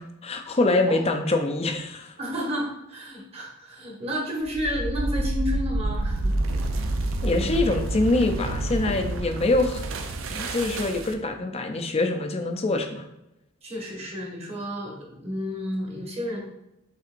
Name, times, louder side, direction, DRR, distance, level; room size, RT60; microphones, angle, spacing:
voice 1, 0.0-2.1 7.2-9.8 10.3-13.0, left 2 dB, 30° left, 5 dB, 0.5 m, -24 dB
voice 2, 2.2-6.3 13.6-16.4, equal, 30° right, -2 dB, 1.3 m, -31 dB
sound 1, 4.4-11.3, right 2 dB, 80° right, 0.5 m, -28 dB
5.6 x 3.4 x 2.6 m, 0.88 s
head